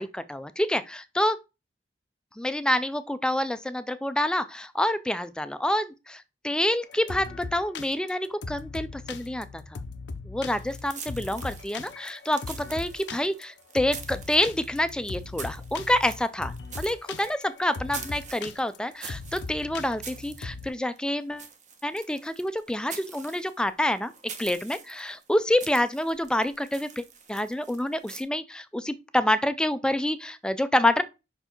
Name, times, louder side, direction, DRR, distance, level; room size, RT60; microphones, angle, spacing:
voice 1, 0.0-1.4 2.4-9.8 10.3-21.5 21.8-24.1 24.4-31.0, left 1 dB, 5° left, 0.3 m, -27 dB
sound 1, 6.8-20.7, left 4 dB, 75° left, 0.6 m, -39 dB
sound 2, 10.6-28.2, right 6 dB, 40° right, 0.9 m, -45 dB
5.5 x 4.6 x 4.4 m
head